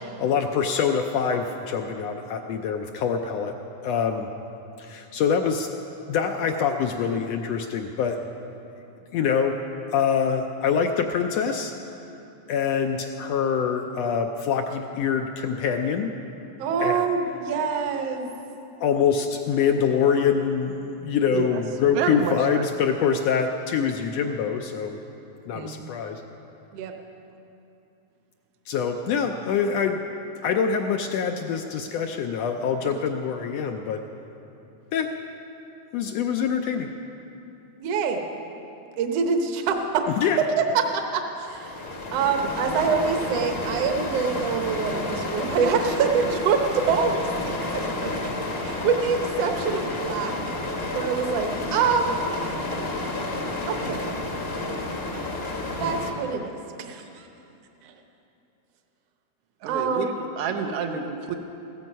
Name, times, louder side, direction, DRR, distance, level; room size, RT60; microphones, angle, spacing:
voice 1, 0.2-3.5 3.8-4.3 4.8-5.7 6.1-8.2 9.1-9.6 9.9-11.7 12.5-16.1 16.8-17.1 18.8-25.0 25.5-26.2 28.7-30.0 30.4-34.0 34.9-35.1 35.9-36.9 40.2-40.4, left 7 dB, 80° left, 4 dB, 1.5 m, -25 dB
voice 2, 16.6-18.3 26.7-26.9 32.9-33.0 37.8-38.2 39.0-40.0 40.7-41.8 42.1-48.3 48.6-50.3 50.9-52.2 53.7-54.2 55.8-56.5 56.8-57.3 57.8-57.9 59.7-60.2, right 5 dB, 65° right, 5 dB, 1.8 m, -25 dB
voice 3, 21.9-22.6 25.5-25.9 59.6-61.3, right 6 dB, 80° right, 3 dB, 1.3 m, -29 dB
sound 1, 41.4-56.1, left 2 dB, 40° left, 0.8 m, -30 dB
15.5 x 14.0 x 5.4 m, 2.9 s
omnidirectional pair, 3.5 m